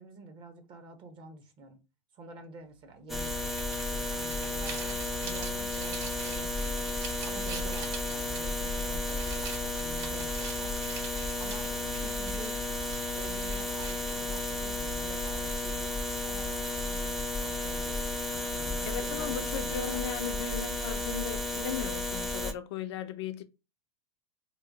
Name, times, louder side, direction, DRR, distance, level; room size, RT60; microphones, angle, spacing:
voice 1, 0.0-1.8 2.1-3.5 3.9-7.0 7.2-10.7 11.2-15.9 16.2-18.1 18.5-20.0, right 4 dB, 35° right, 0.8 m, -48 dB
sound 1, 3.1-22.5, left 2 dB, ahead, 0.4 m, -33 dB
sound 2, 3.2-14.4, right 5 dB, 55° right, 1.3 m, -45 dB
voice 2, 18.9-23.4, left 8 dB, 70° left, 0.5 m, -37 dB
3.0 x 2.1 x 3.8 m
hypercardioid pair, 120°, 15 cm